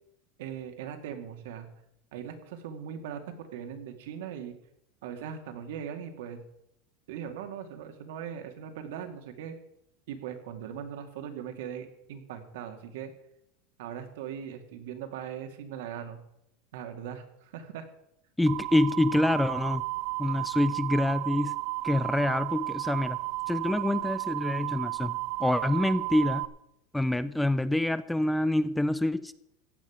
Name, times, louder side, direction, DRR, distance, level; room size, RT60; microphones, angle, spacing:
voice 1, 0.4-1.7 2.1-4.5 5.0-6.4 7.1-9.5 10.1-13.1 13.8-16.2 16.7-17.9, right 8 dB, 80° right, 6 dB, 2.2 m, -40 dB
voice 2, 18.4-19.8 20.2-21.5 21.8-23.2 23.5-25.1 25.4-26.5 26.9-29.3, left 1 dB, 5° left, 15 dB, 0.5 m, -26 dB
sound 1, 18.5-26.4, right 20 dB, 60° right, 0.9 m, -33 dB
15.5 x 5.5 x 10.0 m, 0.80 s
supercardioid pair, 155°, 0 cm